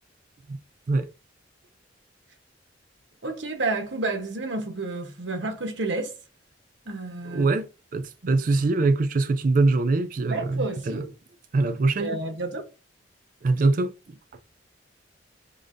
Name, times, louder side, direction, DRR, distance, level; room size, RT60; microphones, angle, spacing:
voice 1, 3.2-6.1 6.9-7.5 8.2-8.4 10.3-11.1 12.0-12.7, right 2 dB, 75° right, 1.0 m, -30 dB
voice 2, 7.3-11.0 11.5-12.2 13.4-13.9, right 3 dB, 45° right, 0.4 m, -23 dB
5.1 x 3.2 x 2.5 m
head